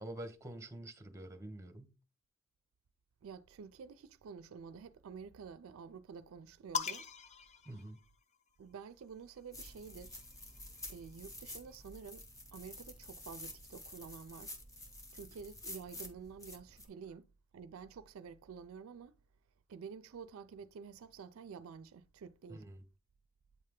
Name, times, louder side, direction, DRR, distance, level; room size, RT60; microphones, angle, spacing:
voice 1, 0.0-1.9 7.6-8.0 22.5-22.8, right 1 dB, 15° right, 0.8 m, -47 dB
voice 2, 3.2-7.1 8.6-10.2 10.9-12.3 12.5-14.5 15.1-17.3 17.5-19.2 19.7-22.7, right 6 dB, 75° right, 0.4 m, -50 dB
sound 1, 6.7-8.5 9.7-11.3, left 6 dB, 35° left, 0.5 m, -43 dB
sound 2, 9.5-16.9, left 1 dB, 15° left, 1.0 m, -50 dB
8.2 x 3.3 x 3.6 m
head